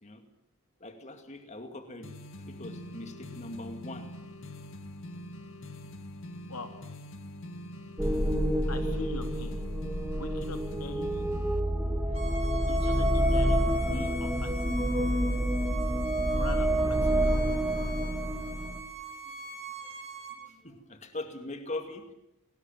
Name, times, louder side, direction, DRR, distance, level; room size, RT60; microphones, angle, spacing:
voice 1, 0.8-2.1 2.5-4.1 19.0-19.1 19.8-19.9 20.4-22.1, left 2 dB, 30° left, 7 dB, 2.3 m, -41 dB
sound 1, 2.0-11.6, left 1 dB, 60° left, 2.0 m, -44 dB
sound 2, 8.0-18.8, equal, 5° right, 2.6 m, -28 dB
voice 2, 8.7-9.6 10.1-11.3 12.7-15.2 16.3-17.4, left 2 dB, 85° left, 6 dB, 3.4 m, -42 dB
Bowed string instrument, 12.1-20.4, right 3 dB, 30° right, 6.3 m, -42 dB
29.0 x 19.5 x 9.1 m, 0.84 s
head